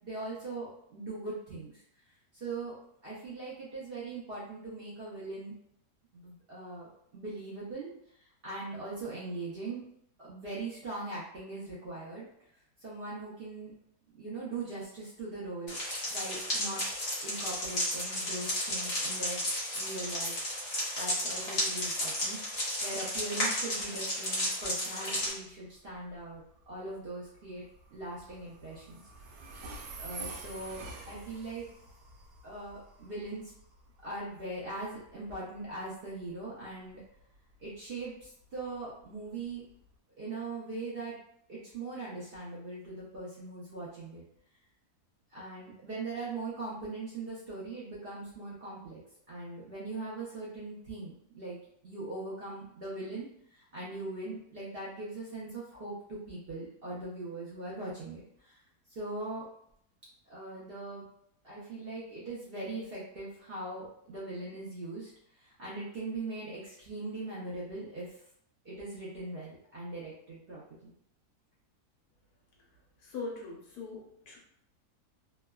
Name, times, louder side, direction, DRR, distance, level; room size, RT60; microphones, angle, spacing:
voice 1, 0.0-1.8 2.1-2.8 3.0-5.5 6.1-7.9 8.2-9.8 10.2-12.3 12.8-13.7 14.1-15.8 16.1-16.8 17.2-19.5 19.7-20.5 21.0-27.6 27.9-29.0 29.3-29.4 30.0-31.7 32.4-33.5 34.0-37.0 37.6-39.6 40.2-41.2 41.5-44.2 45.3-49.0 49.3-58.6 58.9-59.5 60.3-61.1 61.4-68.2 68.6-70.9, right 2 dB, 60° right, -7 dB, 0.6 m, -41 dB
sound 1, 15.7-25.3, left 1 dB, 50° left, 1.2 m, -33 dB
Train, 25.3-39.9, right 2 dB, 85° right, 1.2 m, -49 dB
voice 2, 73.0-74.4, left 3 dB, 70° left, -3 dB, 1.2 m, -41 dB
3.1 x 2.2 x 2.2 m, 0.71 s
omnidirectional pair, 1.7 m